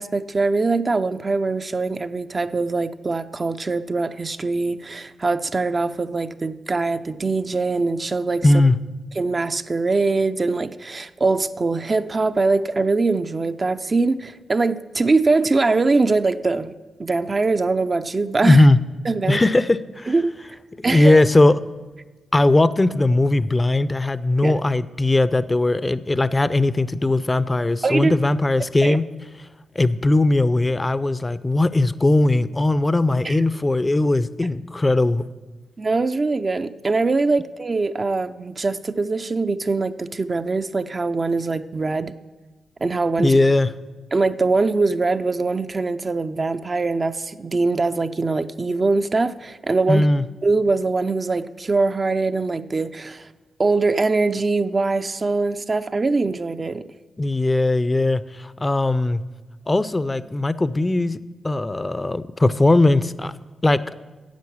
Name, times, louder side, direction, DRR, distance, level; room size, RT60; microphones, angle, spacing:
voice 1, 0.0-8.5 9.2-16.7 17.0-18.6 19.1-19.4 20.1-20.3 20.8-21.2 24.4-24.5 27.8-28.1 28.8-29.0 33.2-33.4 35.8-42.2 42.8-43.4 44.1-50.1 50.4-53.3 53.6-56.9, right 3 dB, 40° right, 10 dB, 0.6 m, -22 dB
voice 2, 8.4-8.8 18.4-18.8 19.3-20.1 20.8-21.6 22.3-29.0 29.8-35.2 43.2-43.7 49.9-50.2 57.2-59.2 59.7-61.2 61.4-63.3 63.6-63.8, left 2 dB, 25° left, 16 dB, 0.6 m, -19 dB
10.5 x 7.7 x 7.1 m, 1.3 s
hypercardioid pair, 40°, 0 cm